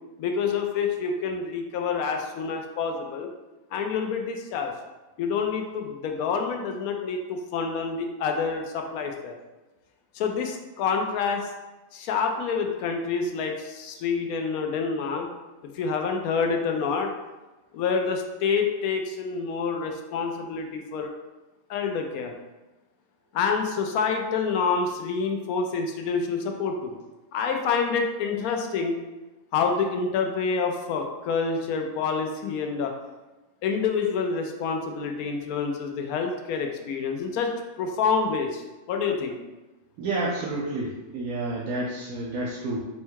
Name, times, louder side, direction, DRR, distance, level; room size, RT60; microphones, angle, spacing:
voice 1, 0.2-3.3 3.7-4.7 5.2-9.3 10.1-11.5 11.9-15.3 15.8-17.1 17.7-21.1 21.7-22.3 23.3-27.0 27.3-29.0 29.5-32.9 33.6-37.5 37.8-38.6 38.9-39.4, left 5 dB, 90° left, 3 dB, 1.0 m, -27 dB
voice 2, 40.0-42.9, right 2 dB, 85° right, -4 dB, 1.1 m, -30 dB
4.4 x 2.2 x 4.5 m, 1.1 s
omnidirectional pair, 1.5 m